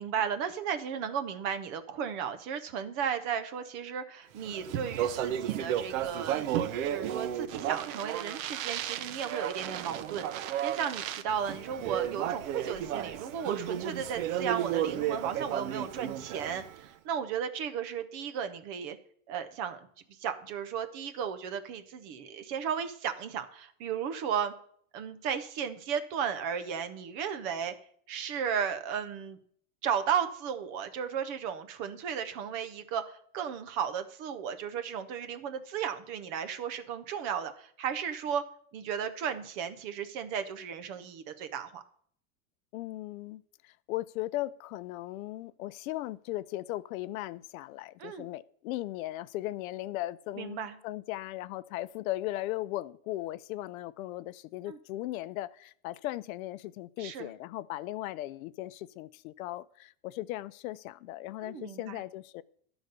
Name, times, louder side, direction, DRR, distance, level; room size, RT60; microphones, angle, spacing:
voice 1, 0.0-6.5 6.8-10.3 10.6-19.0 19.3-19.9 20.2-24.5 24.9-27.7 28.1-29.4 29.8-38.4 38.7-41.8 48.0-48.3 50.4-50.8 54.7-54.8 57.0-57.3 61.4-62.0, right 8 dB, 30° right, 0.4 m, -34 dB
Speech, 4.4-16.8, right 11 dB, 75° right, 0.8 m, -33 dB
voice 2, 42.7-62.4, left 16 dB, 85° left, 0.6 m, -37 dB
11.5 x 4.0 x 6.6 m
supercardioid pair, 175°, 41 cm